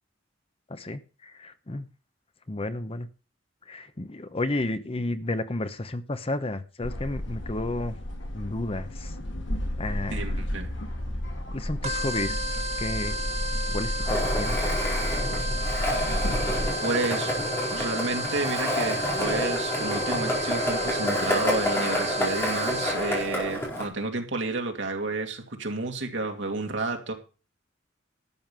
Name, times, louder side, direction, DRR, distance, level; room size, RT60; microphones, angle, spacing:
voice 1, 0.7-1.9 2.5-3.1 3.7-8.0 8.3-9.1 9.8-10.3 11.5-13.1 13.7-14.6, left 2 dB, 30° left, 0.8 m, -32 dB
sound 1, 6.8-16.7, left 1 dB, 75° left, 2.2 m, -31 dB
voice 2, 10.1-10.7 16.2-16.4 16.8-17.4 17.7-27.1, right 3 dB, 70° right, 2.5 m, -31 dB
sound 2, 11.8-23.2, equal, 35° right, 1.5 m, -33 dB
Skateboard, 14.1-23.9, equal, 15° left, 4.6 m, -29 dB
12.5 x 7.2 x 6.1 m
head